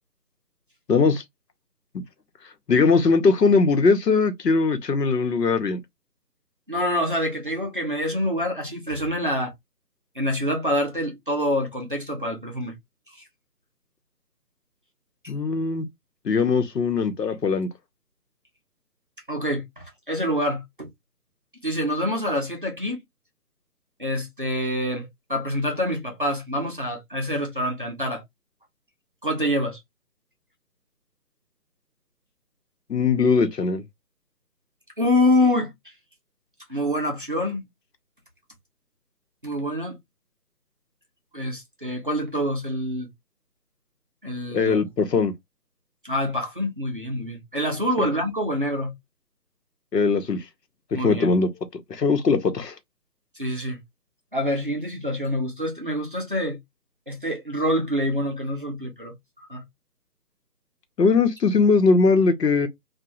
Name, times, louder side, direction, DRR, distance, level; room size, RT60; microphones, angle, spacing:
voice 1, 0.9-1.2 2.7-5.8 15.3-15.8 16.2-17.7 32.9-33.8 44.5-45.3 48.0-48.1 49.9-50.4 51.0-52.7 61.0-62.7, left 4 dB, 90° left, 0.9 m, -20 dB
voice 2, 6.7-9.5 10.2-12.7 19.3-20.9 21.6-23.0 24.0-28.2 29.2-29.8 35.0-35.7 36.7-37.7 39.4-40.0 41.3-43.1 44.2-44.8 46.0-48.9 50.9-51.3 53.4-53.8 54.3-56.6 57.1-59.1 59.5-59.6, left 1 dB, 35° right, 0.5 m, -26 dB
2.9 x 2.3 x 2.3 m
figure-of-eight pair, 160°, 48 cm